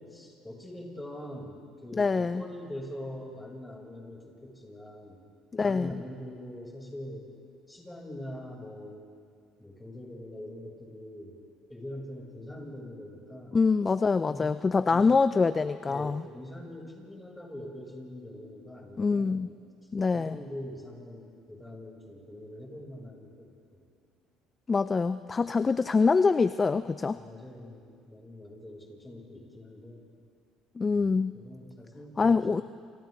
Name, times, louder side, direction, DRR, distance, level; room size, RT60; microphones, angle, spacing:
voice 1, 0.0-5.2 5.6-7.3 7.7-9.1 9.6-11.4 11.7-13.6 14.3-14.6 14.9-15.1 15.8-19.5 20.1-23.9 27.1-30.0 30.9-32.6, left 1 dB, 10° left, -2 dB, 7.8 m, -43 dB
voice 2, 1.9-2.4 5.5-5.9 13.5-16.2 19.0-19.5 19.9-20.4 24.7-27.2 30.8-31.4 32.2-32.6, left 4 dB, 30° left, 13 dB, 0.5 m, -25 dB
29.5 x 28.5 x 4.1 m, 2.2 s
supercardioid pair, 80°, 0 cm